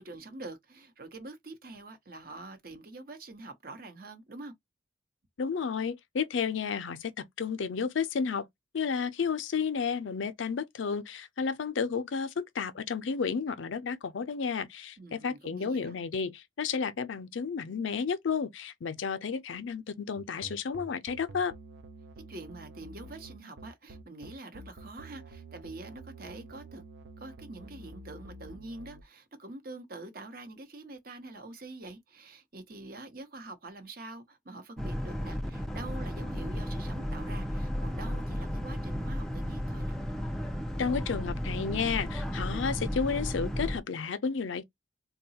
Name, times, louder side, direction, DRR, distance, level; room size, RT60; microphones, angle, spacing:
voice 1, 0.0-4.5 15.0-16.0 22.3-26.8 27.2-40.0, right 2 dB, 50° right, 0.8 m, -45 dB
voice 2, 5.4-8.5 8.7-21.5 40.8-44.6, left 6 dB, 85° left, 0.5 m, -32 dB
sound 1, 20.2-29.0, right 2 dB, 75° right, 0.5 m, -48 dB
Boat Water vehicle, 34.8-43.8, equal, 5° left, 0.3 m, -34 dB
3.8 x 2.2 x 2.7 m
head